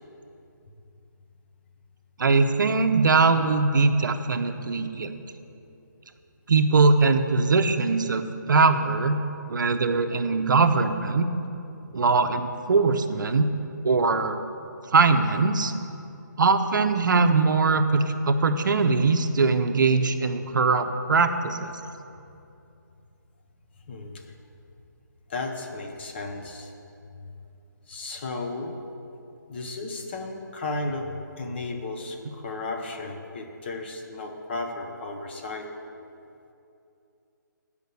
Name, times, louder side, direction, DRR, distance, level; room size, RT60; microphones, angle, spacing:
voice 1, 2.2-5.1 6.5-9.2 9.5-11.3 11.9-13.5 13.8-14.4 14.9-15.7 16.4-21.7, right 4 dB, 70° right, 8 dB, 0.6 m, -21 dB
voice 2, 23.9-24.2 25.3-26.7 27.9-28.7 29.5-35.7, left 2 dB, 30° left, 3 dB, 0.7 m, -34 dB
8.1 x 5.1 x 6.8 m, 2.7 s
hypercardioid pair, 165°, 11 cm